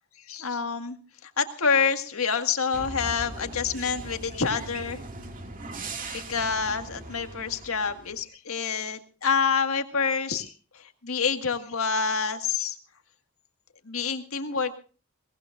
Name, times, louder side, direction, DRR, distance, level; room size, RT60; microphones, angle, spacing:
voice 1, 0.3-5.0 6.1-12.8 13.9-14.8, left 5 dB, 75° left, 7 dB, 1.8 m, -27 dB
sound 1, 2.7-8.2, right 2 dB, 40° right, 2.2 m, -40 dB
22.5 x 18.5 x 2.5 m, 0.38 s
head